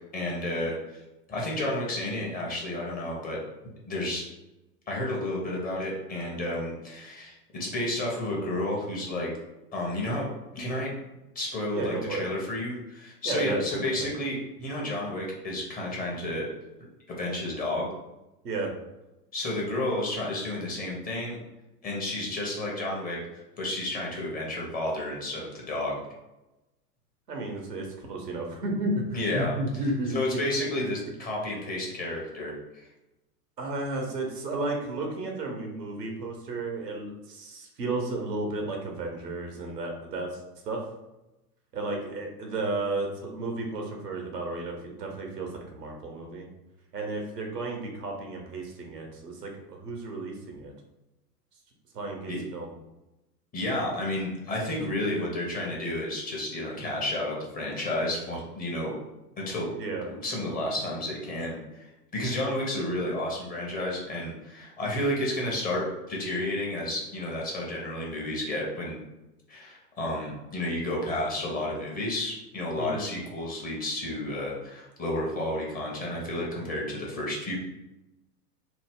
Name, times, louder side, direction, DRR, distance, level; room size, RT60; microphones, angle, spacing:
voice 1, 0.1-1.0 1.3-3.4 3.9-4.2 4.9-9.3 9.7-10.2 10.5-10.9 11.3-16.5 17.1-17.9 19.3-21.4 21.8-23.2 23.6-26.0 29.1-29.5 30.1-32.9 52.3-52.4 53.5-58.9 59.4-59.7 60.2-61.8 62.1-69.0 69.5-77.6, left 1 dB, 20° left, -3 dB, 0.7 m, -31 dB
voice 2, 11.7-12.2 13.2-14.1 18.4-18.7 27.3-30.4 33.6-40.8 41.7-46.5 46.9-50.7 51.9-52.7 59.7-60.1 72.7-73.0, right 2 dB, 85° right, 1 dB, 0.9 m, -33 dB
2.8 x 2.0 x 3.5 m, 0.97 s
hypercardioid pair, 100°, 47 cm